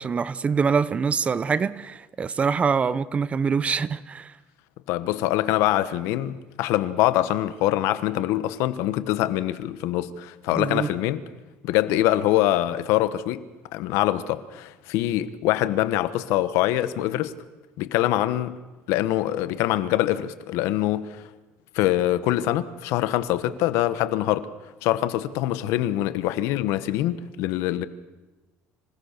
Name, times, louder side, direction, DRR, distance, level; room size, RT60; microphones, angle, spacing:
voice 1, 0.0-4.3 10.5-10.9, right 5 dB, 25° right, 0.7 m, -24 dB
voice 2, 4.9-11.2 11.6-13.4 13.7-17.3 17.8-18.6 18.9-21.2 21.7-24.5 24.8-27.9, left 14 dB, 75° left, 1.2 m, -24 dB
26.5 x 17.0 x 6.6 m
cardioid pair, 130°, 5 cm